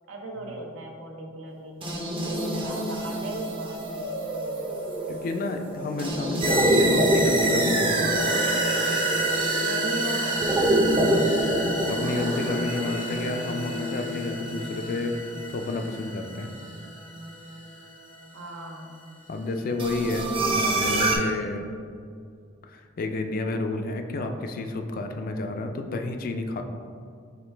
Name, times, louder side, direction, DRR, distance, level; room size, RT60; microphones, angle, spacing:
voice 1, 0.1-4.9 9.6-10.5 18.3-19.0, right 1 dB, 75° right, 1 dB, 0.7 m, -37 dB
sound 1, 1.8-17.9 19.8-21.2, right 1 dB, 25° right, 0.6 m, -26 dB
voice 2, 5.1-8.2 10.9-11.5 11.9-15.2 15.5-16.5 19.3-21.7 22.6-26.6, left 2 dB, 45° left, 6 dB, 0.3 m, -31 dB
4.9 x 3.1 x 3.3 m, 2.3 s
head